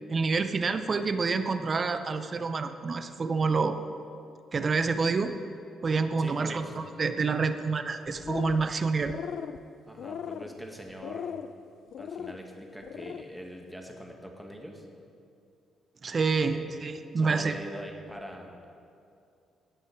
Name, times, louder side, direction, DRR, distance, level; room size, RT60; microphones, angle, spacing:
voice 1, 0.1-3.8 4.5-5.4 5.8-9.1 16.0-17.5, right 4 dB, 40° right, 10 dB, 0.5 m, -28 dB
voice 2, 6.2-6.7 9.9-11.3 12.0-14.9 16.4-16.7 17.1-18.6, equal, 5° right, 1 dB, 1.6 m, -42 dB
sound 1, 8.1-8.7 9.0-9.6 10.0-10.5 11.0-11.5 11.9-12.4 12.8-13.2, left 8 dB, 65° left, 0.4 m, -38 dB
17.0 x 6.2 x 4.6 m, 2.6 s
cardioid pair, 90°, 0 cm